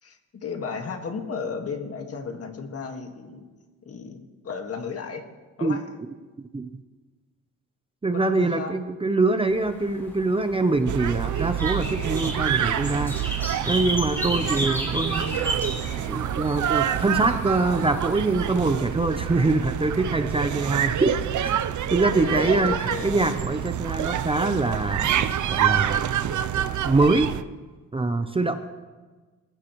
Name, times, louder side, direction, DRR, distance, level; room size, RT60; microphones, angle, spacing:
voice 1, 0.0-3.4 3.8-4.2 4.4-5.2 5.6-5.8 8.1-8.8 14.3-14.5 22.2-23.1, left 5 dB, 50° left, 3 dB, 1.8 m, -34 dB
voice 2, 8.0-13.2 13.6-15.4 16.1-21.1 21.4-21.5 21.9-26.1 26.5-27.3 27.9-28.6, right 3 dB, 20° right, 8 dB, 0.6 m, -24 dB
sound 1, 9.5-18.7, right 1 dB, 5° left, 3.5 m, -34 dB
sound 2, 10.9-27.4, right 10 dB, 75° right, 0.6 m, -27 dB
25.5 x 15.0 x 3.1 m, 1.3 s
wide cardioid pair, 175°, 30 cm